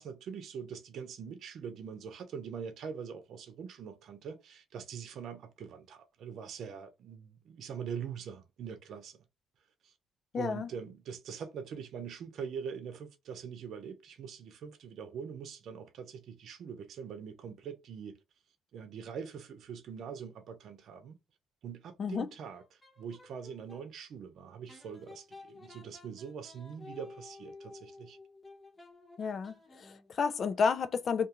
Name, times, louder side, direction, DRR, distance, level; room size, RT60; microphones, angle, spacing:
voice 1, 0.0-9.2 9.8-9.9 10.3-18.2 18.7-21.2 21.6-22.6 23.0-28.2, right 7 dB, 70° right, 0.7 m, -43 dB
voice 2, 10.3-10.7 22.0-22.3 29.2-31.3, left 5 dB, 55° left, 0.4 m, -31 dB
sound 1, 22.5-23.9 24.7-30.1, left 3 dB, 25° left, 1.0 m, -53 dB
2.5 x 2.4 x 2.9 m
cardioid pair, 90°, 0 cm